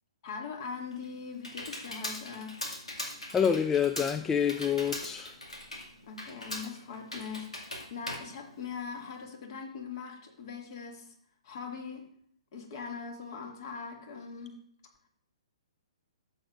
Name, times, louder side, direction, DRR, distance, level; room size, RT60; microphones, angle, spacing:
voice 1, 0.2-2.5 6.1-11.1 11.4-12.0 12.5-14.6, left 5 dB, 45° left, 2.2 m, -41 dB
Computer keyboard, 0.6-9.2, left 1 dB, 90° left, 2.2 m, -41 dB
voice 2, 3.3-5.4, left 7 dB, 10° left, 0.3 m, -27 dB
12.5 x 7.5 x 2.5 m
figure-of-eight pair, 125°, 3 cm